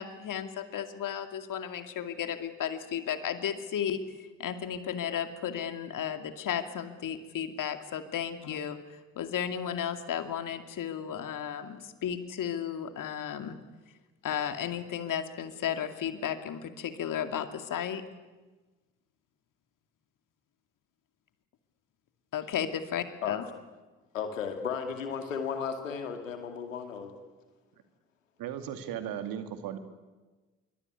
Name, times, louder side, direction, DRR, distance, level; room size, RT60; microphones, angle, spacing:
voice 1, 0.0-4.0 4.4-8.8 9.2-13.6 14.2-18.0 22.3-23.4, left 9 dB, 55° left, 8 dB, 2.5 m, -34 dB
voice 2, 24.1-27.1, left 6 dB, 85° left, 6 dB, 2.4 m, -34 dB
voice 3, 28.4-29.8, right 9 dB, 65° right, 9 dB, 2.5 m, -36 dB
25.5 x 23.5 x 9.8 m, 1.2 s
figure-of-eight pair, 40°, 38 cm